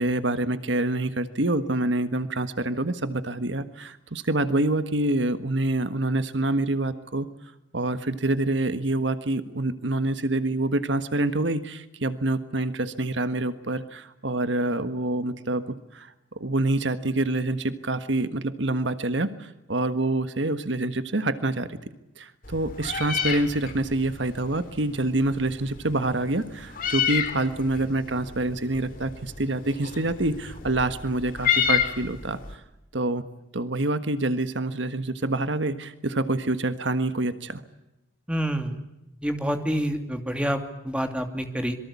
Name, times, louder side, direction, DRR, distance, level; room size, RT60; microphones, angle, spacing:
voice 1, 0.0-7.3 7.7-15.6 15.9-21.8 22.2-32.6 32.9-33.2 33.5-37.6, right 2 dB, 70° right, 11 dB, 1.5 m, -26 dB
Meow, 22.4-32.5, left 8 dB, 45° left, 3.4 m, -31 dB
voice 2, 38.3-38.8 39.2-41.8, equal, 5° right, 5 dB, 2.7 m, -27 dB
26.5 x 23.5 x 8.5 m, 0.90 s
head